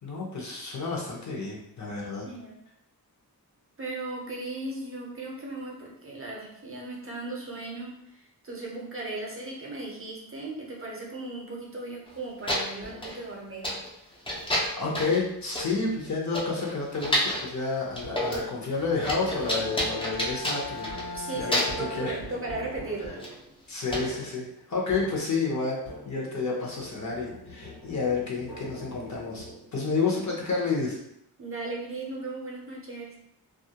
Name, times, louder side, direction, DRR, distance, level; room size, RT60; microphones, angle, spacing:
voice 1, 0.0-2.3 14.8-20.9 21.3-22.2 23.7-29.5 29.7-31.0, left 4 dB, 50° left, -3 dB, 0.7 m, -30 dB
voice 2, 2.3-2.6 3.8-13.7 21.1-23.2 31.4-33.2, right 2 dB, 35° right, -2 dB, 0.6 m, -37 dB
sound 1, 12.1-12.2 12.5-13.2 13.6-13.9 14.3-15.2 15.6-15.7 16.0-16.1 16.3-17.5 17.9-18.5 18.7-21.2 21.5-21.9 23.2-23.3 23.9-24.0, equal, 15° left, 0.4 m, -30 dB
sound 2, 12.8-13.3 14.3-14.8 15.7-16.2 17.9-26.5 26.8-29.9, equal, 65° left, 1.1 m, -44 dB
Bowed string instrument, 18.8-22.9, left 4 dB, 90° left, 0.5 m, -40 dB
2.3 x 2.1 x 2.8 m, 0.76 s
wide cardioid pair, 115°, 38 cm